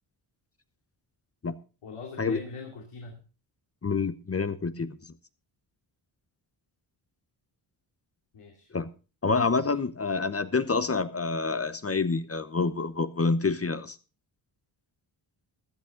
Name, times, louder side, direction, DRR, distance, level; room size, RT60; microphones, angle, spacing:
voice 1, 1.8-3.2 8.3-8.7 9.5-9.8, left 4 dB, 85° left, 1 dB, 2.7 m, -42 dB
voice 2, 3.8-5.0 8.7-8.9 9.2-14.0, left 4 dB, 30° left, 12 dB, 0.9 m, -27 dB
15.5 x 10.5 x 3.8 m, 0.34 s
cardioid pair, 65°, 50 cm